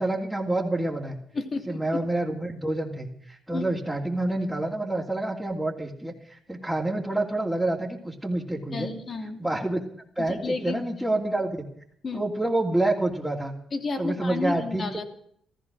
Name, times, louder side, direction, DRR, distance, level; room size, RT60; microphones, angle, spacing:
voice 1, 0.0-1.2 1.7-6.1 6.5-8.9 9.4-9.8 10.2-11.6 12.1-13.5 14.0-15.0, right 2 dB, 5° right, -4 dB, 2.9 m, -27 dB
voice 2, 1.3-2.0 3.5-3.7 8.7-9.4 10.2-10.8 12.0-12.2 13.7-15.0, left 3 dB, 40° left, 5 dB, 2.9 m, -31 dB
15.5 x 14.5 x 6.3 m, 0.65 s
cardioid pair, 80°, 0 cm